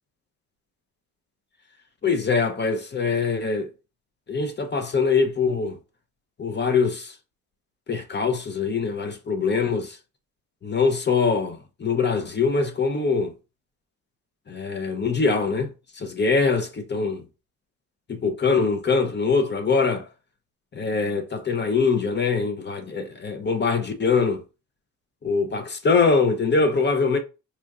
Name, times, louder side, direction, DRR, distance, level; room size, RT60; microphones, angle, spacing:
voice 1, 2.0-3.7 4.3-5.8 6.4-7.1 7.9-10.0 10.6-13.3 14.5-17.2 18.1-20.1 20.7-24.4 25.2-27.2, left 4 dB, 30° left, 0.6 m, -23 dB
4.2 x 2.6 x 2.3 m
cardioid pair, 85°, 35 cm